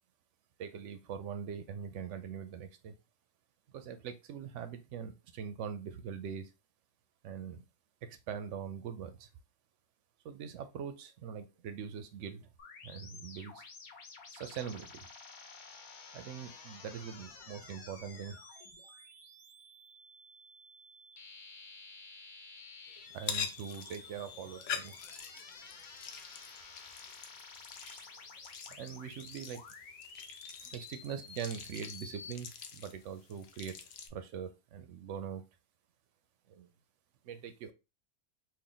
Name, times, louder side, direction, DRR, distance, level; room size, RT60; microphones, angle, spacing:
voice 1, 0.6-2.9 3.7-6.5 7.2-7.6 8.0-9.3 10.2-12.5 12.8-13.6 14.3-15.1 16.1-18.4 23.1-25.0 27.8-28.2 28.7-29.6 30.6-33.8 34.1-35.4 36.5-36.7 37.2-37.7, right 7 dB, 65° right, 9 dB, 0.7 m, -42 dB
sound 1, 12.6-32.3, left 4 dB, 65° left, 1.2 m, -52 dB
sound 2, 23.1-34.1, left 7 dB, 90° left, 0.5 m, -45 dB
3.3 x 2.4 x 3.8 m, 0.27 s
omnidirectional pair, 1.7 m